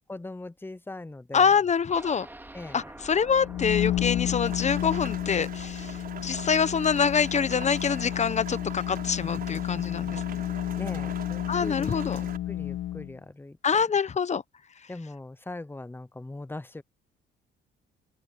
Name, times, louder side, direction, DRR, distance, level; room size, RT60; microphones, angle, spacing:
voice 1, 0.1-1.5 2.5-2.8 10.8-12.0 12.5-13.6 14.9-16.8, left 2 dB, 10° left, 0.8 m, -40 dB
voice 2, 1.3-2.3 2.7-6.0 6.2-10.4 11.5-12.2 13.6-14.4, left 6 dB, 35° left, 1.0 m, -25 dB
sound 1, 1.9-9.8 10.1-10.2 10.6-10.7, right 1 dB, 10° right, 2.4 m, -49 dB
sound 2, 3.3-13.2, left 13 dB, 85° left, 1.9 m, -31 dB
Rain, 4.5-12.4, right 7 dB, 50° right, 4.7 m, -42 dB
open air
cardioid pair, 90°, 20 cm